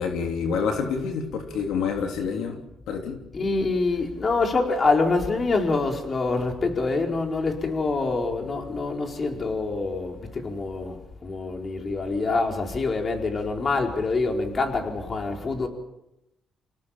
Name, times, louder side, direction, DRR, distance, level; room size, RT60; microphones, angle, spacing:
voice 1, 0.0-3.2, left 6 dB, 85° left, 3.1 m, -28 dB
voice 2, 3.3-15.7, left 3 dB, 40° left, 4.5 m, -25 dB
27.5 x 18.0 x 7.4 m
cardioid pair, 90°, 0 cm